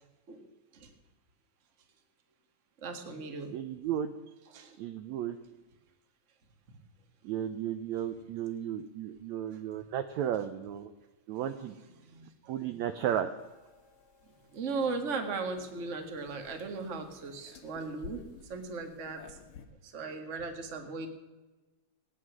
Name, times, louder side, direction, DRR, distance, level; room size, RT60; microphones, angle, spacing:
voice 1, 2.8-3.5 4.4-4.8 9.5-9.6 11.8-12.8 14.2-18.2 18.5-19.4 19.8-21.1, right 4 dB, 30° right, 4 dB, 1.4 m, -38 dB
voice 2, 3.5-4.1 4.8-5.4 7.2-10.9 11.3-11.7 12.5-13.3, right 10 dB, 75° right, 9 dB, 1.7 m, -34 dB
sound 1, 13.4-19.7, left 6 dB, 55° left, 1.7 m, -54 dB
19.0 x 9.8 x 6.2 m, 1.2 s
omnidirectional pair, 3.9 m